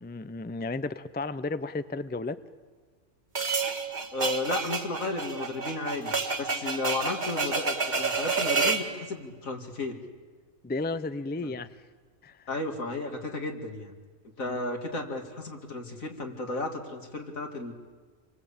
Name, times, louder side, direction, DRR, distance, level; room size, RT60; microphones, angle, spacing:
voice 1, 0.0-2.4 10.6-11.7 12.2-12.5 14.5-14.6, left 3 dB, 10° left, 13 dB, 0.5 m, -33 dB
sound 1, 3.4-8.9, right 4 dB, 35° right, 1.8 m, -29 dB
voice 2, 4.1-10.0 12.5-13.9 14.4-17.7, left 2 dB, 80° left, 3 dB, 3.2 m, -33 dB
28.0 x 23.0 x 8.7 m, 1.5 s
omnidirectional pair, 1.4 m